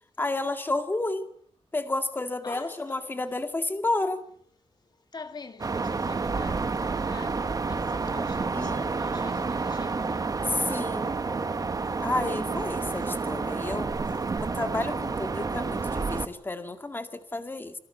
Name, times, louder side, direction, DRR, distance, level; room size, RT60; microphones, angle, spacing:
voice 1, 0.2-1.3 1.7-4.2 8.5-8.9 10.6-11.1 12.0-17.7, left 2 dB, 20° left, 2.0 m, -31 dB
voice 2, 2.4-3.1 5.0-12.1, left 4 dB, 40° left, 1.9 m, -46 dB
sound 1, 5.6-16.3, right 4 dB, 35° right, 1.5 m, -29 dB
26.5 x 18.5 x 8.3 m
wide cardioid pair, 130°, 10 cm